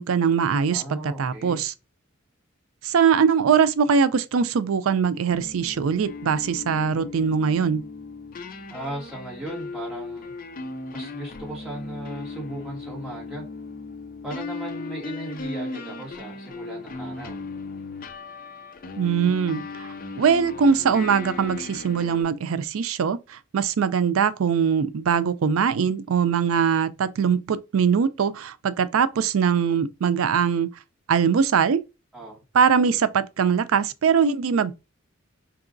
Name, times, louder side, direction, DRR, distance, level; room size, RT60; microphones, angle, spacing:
voice 1, 0.0-1.7 2.8-7.8 19.0-19.9 20.2-30.7 31.1-31.8 32.5-34.7, right 6 dB, 90° right, 0.4 m, -22 dB
voice 2, 0.7-1.6 8.7-10.3 10.9-13.4 14.2-17.4 32.1-32.4, right 1 dB, 5° right, 2.1 m, -37 dB
sound 1, 5.3-22.2, left 3 dB, 45° left, 0.5 m, -37 dB
4.7 x 2.9 x 2.6 m
head